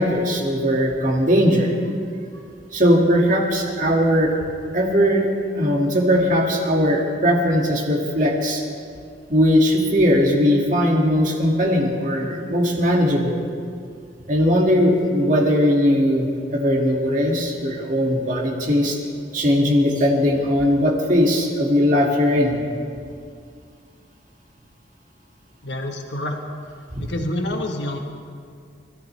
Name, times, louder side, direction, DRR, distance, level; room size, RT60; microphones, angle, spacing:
voice 1, 0.0-1.8 2.7-4.4 4.7-5.3 5.5-8.6 9.3-13.4 14.3-19.0 19.3-22.6 26.9-27.0, equal, 45° right, -1 dB, 2.2 m, -19 dB
voice 2, 25.6-26.4 27.0-28.0, left 1 dB, 70° left, 3 dB, 1.4 m, -27 dB
29.0 x 14.0 x 3.4 m, 2.3 s
head